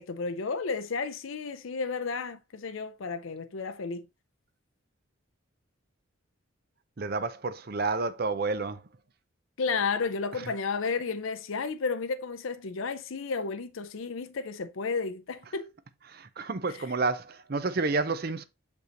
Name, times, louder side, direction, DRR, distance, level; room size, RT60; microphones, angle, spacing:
voice 1, 0.0-4.1 9.6-15.7 16.7-16.8, left 4 dB, 75° left, 0.5 m, -32 dB
voice 2, 7.0-8.8 16.1-18.4, right 3 dB, 45° right, 0.6 m, -30 dB
6.5 x 5.3 x 2.9 m
head